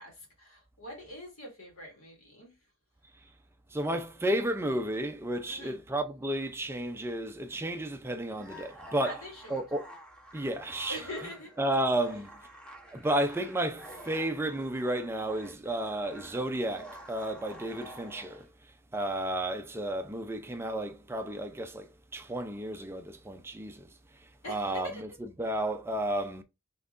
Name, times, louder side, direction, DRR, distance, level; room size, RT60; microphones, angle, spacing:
voice 1, 0.0-2.6 5.5-5.8 9.0-9.6 10.9-11.6 12.0-12.2 24.4-25.0, left 1 dB, 70° left, 2.3 m, -43 dB
voice 2, 3.7-9.1 9.5-9.8 10.3-11.0 11.6-12.3 12.9-18.4 18.9-21.9 22.1-23.9 24.5-24.9 25.4-26.4, right 1 dB, 10° right, 0.4 m, -32 dB
sound 1, 8.3-18.5, right 1 dB, 5° left, 0.9 m, -50 dB
5.8 x 3.6 x 2.4 m
head